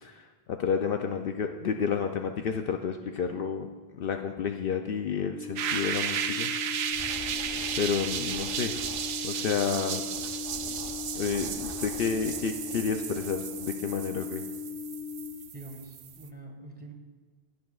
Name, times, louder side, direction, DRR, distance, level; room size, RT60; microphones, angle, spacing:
voice 1, 0.0-3.7 3.9-6.5 7.8-8.7 9.2-10.0 11.1-14.4, left 6 dB, 65° left, 5 dB, 0.7 m, -30 dB
sound 1, 5.3-15.3, left 8 dB, 25° right, 2.9 m, -39 dB
sound 2, 5.6-16.3, right 9 dB, 75° right, 0.8 m, -34 dB
Scratching (performance technique), 6.8-9.2 10.1-14.4, left 1 dB, 30° left, 2.3 m, -47 dB
voice 2, 15.5-16.9, right 2 dB, 10° right, 0 dB, 1.4 m, -45 dB
16.0 x 9.4 x 2.4 m, 1.4 s
omnidirectional pair, 1.1 m